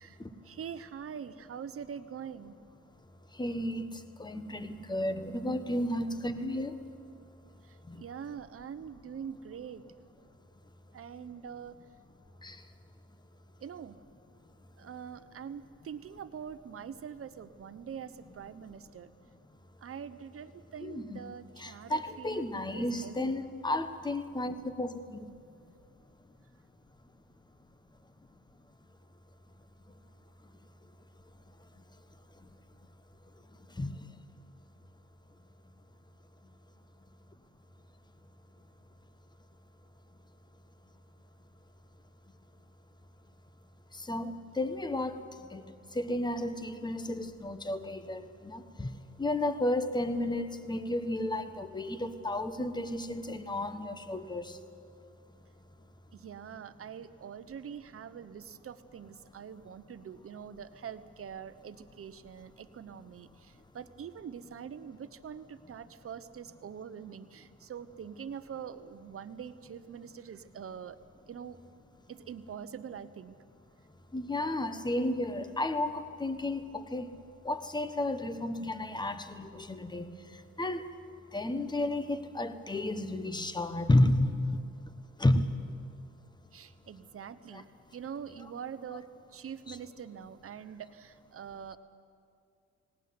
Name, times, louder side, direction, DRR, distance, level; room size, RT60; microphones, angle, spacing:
voice 1, 0.4-2.6 7.7-9.8 10.9-11.7 13.6-14.0 14.8-19.1 19.8-23.4 56.1-71.0 71.3-71.6 72.1-73.4 86.5-87.6 87.9-91.8, right 7 dB, 45° right, 12 dB, 1.1 m, -44 dB
voice 2, 3.3-6.8 7.9-8.0 12.4-12.6 20.8-21.2 21.6-25.3 33.7-34.1 43.9-48.9 49.2-54.6 74.1-77.2 77.4-80.9 81.3-84.9 85.2-85.6 87.5-87.6 89.7-89.8, left 1 dB, 15° left, 10 dB, 1.3 m, -32 dB
18.5 x 18.5 x 9.6 m, 2.4 s
cardioid pair, 90°, 30 cm